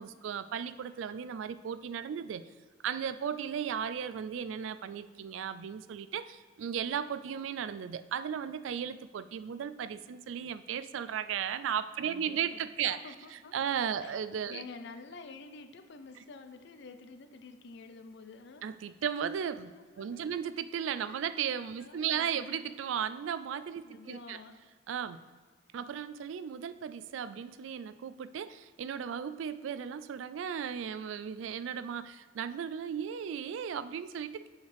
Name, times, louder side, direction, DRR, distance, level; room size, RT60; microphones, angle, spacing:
voice 1, 0.0-2.4 2.8-14.6 18.6-19.7 20.0-24.4 24.9-25.2 25.7-34.5, right 8 dB, 90° right, 13 dB, 0.3 m, -36 dB
voice 2, 12.0-13.7 14.0-14.2 14.5-18.6 19.7-20.4 21.1-21.2 21.8-22.5 23.8-24.6, left 4 dB, 65° left, 8 dB, 0.5 m, -49 dB
7.9 x 4.8 x 3.3 m, 1.5 s
head